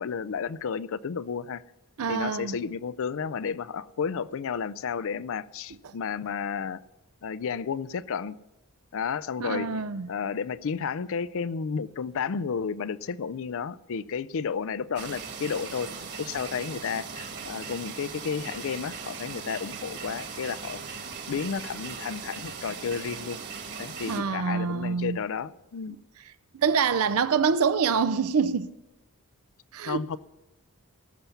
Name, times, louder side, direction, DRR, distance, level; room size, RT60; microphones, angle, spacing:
voice 1, 0.0-1.6 2.1-6.8 7.2-8.4 8.9-9.7 10.1-15.9 16.2-20.8 21.3-23.4 23.8-26.0 29.9-30.2, left 6 dB, 65° left, 0.4 m, -32 dB
voice 2, 2.0-2.6 5.8-5.9 9.4-10.1 24.1-25.2 25.9-26.0 26.5-28.7 29.7-30.0, right 6 dB, 70° right, 0.5 m, -26 dB
sound 1, 15.0-24.2, right 5 dB, 50° right, 1.6 m, -39 dB
18.5 x 7.0 x 5.8 m
head